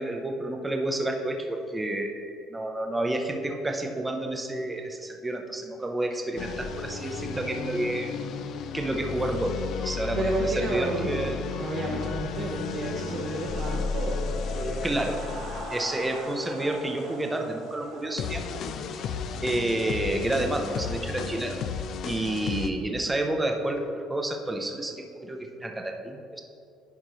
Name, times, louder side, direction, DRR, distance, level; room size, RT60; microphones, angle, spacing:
voice 1, 0.0-8.1 8.7-11.4 14.8-15.2 15.7-18.6 19.4-21.6 22.0-26.4, right 1 dB, 10° right, 3 dB, 0.7 m, -30 dB
sound 1, 6.4-22.7, left 6 dB, 50° left, 0.4 m, -34 dB
voice 2, 10.2-14.9, right 2 dB, 50° right, -3 dB, 0.9 m, -31 dB
sound 2, 12.7-21.0, right 3 dB, 90° right, 1.5 m, -45 dB
10.5 x 5.1 x 3.1 m, 2.5 s
cardioid pair, 135°, 0 cm